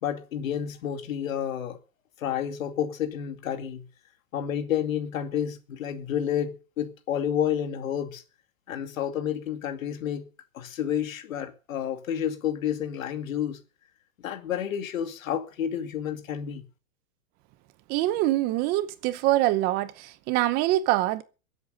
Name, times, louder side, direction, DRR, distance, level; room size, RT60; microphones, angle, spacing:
voice 1, 0.0-1.8 2.2-3.9 4.3-8.2 8.7-10.3 10.5-13.6 14.2-16.6, left 9 dB, 75° left, 2.5 m, -30 dB
voice 2, 17.9-21.2, right 15 dB, 25° right, 0.8 m, -24 dB
22.5 x 8.1 x 5.4 m
supercardioid pair, 160°, 41 cm